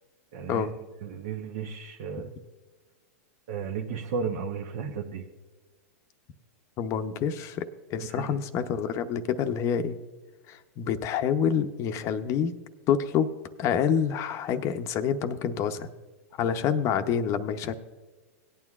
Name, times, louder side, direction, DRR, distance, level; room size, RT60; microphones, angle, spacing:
voice 1, 0.3-0.7 1.0-2.3 3.5-5.3 8.1-8.4, right 6 dB, 60° right, 1 dB, 1.0 m, -34 dB
voice 2, 6.8-10.0 10.5-12.5 12.9-13.3 13.6-15.9 16.3-17.7, left 7 dB, 40° left, 9 dB, 0.7 m, -27 dB
18.5 x 9.1 x 2.4 m, 1.2 s
hypercardioid pair, 125°, 8 cm